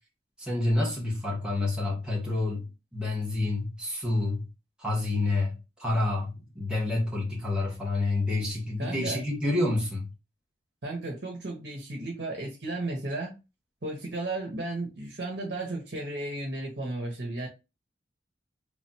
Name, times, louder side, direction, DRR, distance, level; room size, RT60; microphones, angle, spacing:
voice 1, 0.4-4.4 4.8-5.5 5.8-10.1, left 2 dB, 5° right, 1.5 m, -28 dB
voice 2, 8.8-9.2 10.8-13.3 13.8-17.5, right 2 dB, 75° right, 1.1 m, -34 dB
3.8 x 3.2 x 2.8 m
head